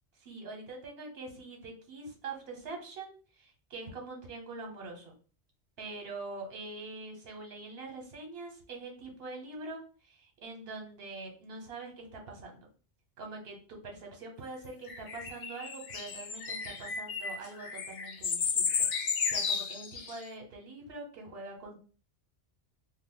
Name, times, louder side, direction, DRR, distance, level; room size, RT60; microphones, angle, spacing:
voice 1, 0.2-5.2 5.8-12.7 13.2-21.8, right 3 dB, 60° right, 2 dB, 1.1 m, -44 dB
sound 1, 14.9-20.2, left 6 dB, 60° left, 0.5 m, -33 dB
2.4 x 2.3 x 3.7 m, 0.39 s
omnidirectional pair, 1.2 m